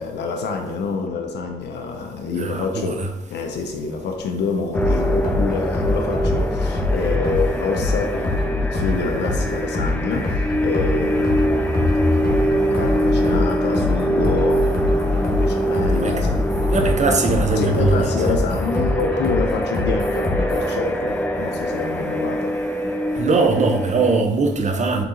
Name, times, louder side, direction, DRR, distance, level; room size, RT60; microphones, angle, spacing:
voice 1, 0.0-3.0 3.3-11.7 12.8-16.4 17.6-22.6, left 4 dB, 80° left, 3 dB, 0.5 m, -27 dB
voice 2, 2.4-3.1 16.0-16.2 16.7-18.3 23.1-25.0, right 3 dB, 40° right, 5 dB, 0.6 m, -21 dB
sound 1, 4.7-20.7, left 2 dB, 55° left, 1.2 m, -24 dB
sound 2, 4.7-24.2, equal, 10° left, 0.4 m, -24 dB
3.6 x 2.9 x 3.7 m, 1.0 s
supercardioid pair, 50°, 17 cm